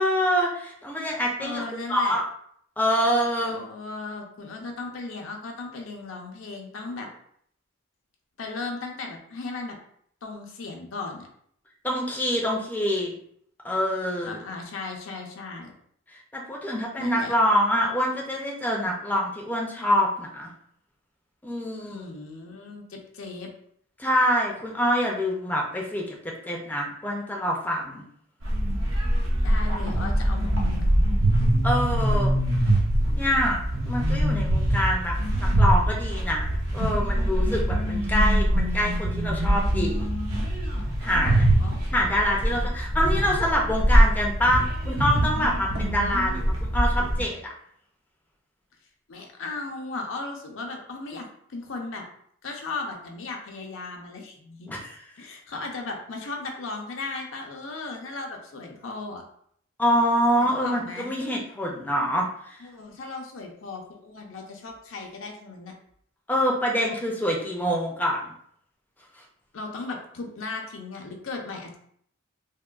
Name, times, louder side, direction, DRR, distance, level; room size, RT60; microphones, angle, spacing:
voice 1, 0.0-1.6 1.9-2.2 2.8-3.6 11.8-13.1 13.6-14.3 16.3-20.5 21.4-22.1 24.0-26.2 26.5-28.0 31.6-32.3 33.1-33.6 33.9-40.1 41.0-41.4 41.9-46.4 46.7-47.4 54.7-55.0 59.8-62.6 66.3-68.2, equal, 10° left, -2 dB, 0.4 m, -25 dB
voice 2, 1.4-2.2 3.5-7.1 8.4-9.8 10.2-11.3 14.2-15.7 17.0-17.3 21.7-23.5 29.4-30.9 41.1-41.7 49.1-52.0 52.4-54.7 55.2-59.2 60.4-61.1 62.6-65.7 69.5-71.8, left 3 dB, 75° left, 2 dB, 0.5 m, -36 dB
sound 1, 28.4-47.2, right 1 dB, 80° right, 0.8 m, -23 dB
3.5 x 2.2 x 2.3 m, 0.66 s
head